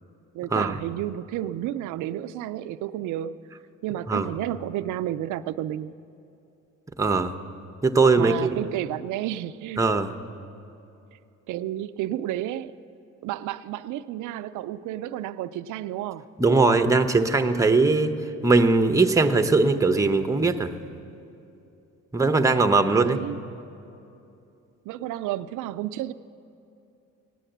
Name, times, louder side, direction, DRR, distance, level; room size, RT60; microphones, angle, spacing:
voice 1, 0.3-3.4 3.8-5.9 8.2-9.9 11.5-12.8 13.2-16.2 22.9-23.4 24.9-26.1, right 13 dB, 85° right, 12 dB, 0.5 m, -31 dB
voice 2, 7.0-7.3 7.8-8.6 9.8-10.1 16.4-18.1 18.4-20.7 22.1-23.2, right 3 dB, 10° right, 8 dB, 0.8 m, -20 dB
16.5 x 9.9 x 7.9 m, 2.7 s
cardioid pair, 90°, 30 cm